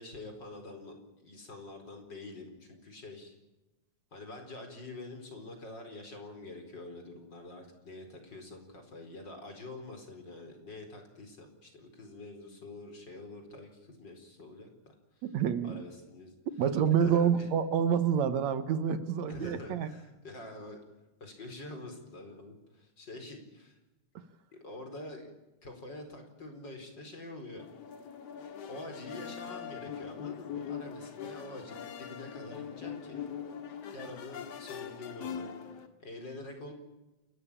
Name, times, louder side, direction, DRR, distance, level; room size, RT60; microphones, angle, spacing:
voice 1, 0.0-3.4 4.1-14.7 15.1-15.3 15.6-16.3 16.9-17.5 19.3-20.8 21.2-23.8 24.5-25.3 25.6-27.6 28.7-33.2 33.9-35.7 36.0-36.7, left 2 dB, 35° left, 5 dB, 5.0 m, -46 dB
voice 2, 15.2-15.9 16.6-19.9, right 8 dB, 70° right, 12 dB, 2.3 m, -28 dB
sound 1, 27.6-35.9, left 8 dB, 60° left, 2.7 m, -42 dB
29.5 x 14.0 x 8.8 m, 1.0 s
omnidirectional pair, 3.3 m